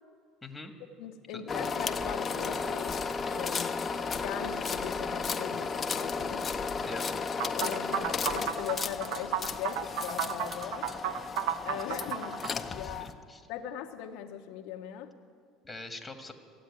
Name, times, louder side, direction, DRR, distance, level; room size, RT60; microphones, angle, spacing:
voice 1, 0.4-0.7 1.3-1.4 6.9-7.1 12.6-13.4 15.6-16.3, left 2 dB, 10° left, 5 dB, 1.6 m, -43 dB
voice 2, 1.0-3.0 3.3-3.7 4.1-6.5 7.6-10.9 11.6-12.4 12.7-13.1 13.5-15.1, left 10 dB, 75° left, 4 dB, 0.8 m, -39 dB
sound 1, 1.5-13.1, left 5 dB, 30° left, 0.7 m, -34 dB
sound 2, 7.4-12.5, right 9 dB, 70° right, 0.7 m, -33 dB
14.0 x 8.6 x 9.7 m, 2.1 s
supercardioid pair, 95°, 0 cm